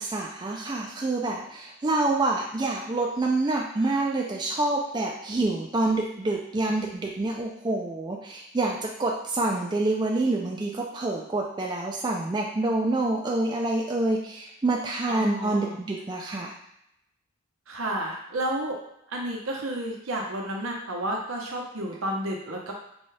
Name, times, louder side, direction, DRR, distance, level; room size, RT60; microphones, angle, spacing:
voice 1, 0.0-16.5, right 2 dB, 20° right, -1 dB, 0.4 m, -27 dB
voice 2, 15.1-15.7 17.7-18.7 19.1-22.7, right 1 dB, 75° right, -1 dB, 0.8 m, -31 dB
4.0 x 2.3 x 3.2 m, 0.77 s
head